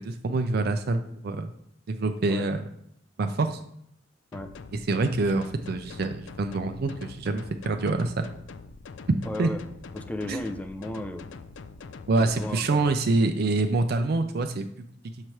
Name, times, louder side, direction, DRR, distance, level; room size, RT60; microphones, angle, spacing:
voice 1, 0.0-1.5 1.9-2.7 3.2-3.6 4.9-8.3 9.1-9.5 10.3-10.4 12.1-14.6, right 3 dB, 55° right, 7 dB, 0.4 m, -26 dB
sound 1, 4.3-12.5, left 4 dB, 80° left, 0.4 m, -44 dB
voice 2, 9.3-9.6 9.9-11.2 12.2-12.9, left 1 dB, 10° left, 7 dB, 0.4 m, -35 dB
6.5 x 3.1 x 5.8 m, 0.73 s
head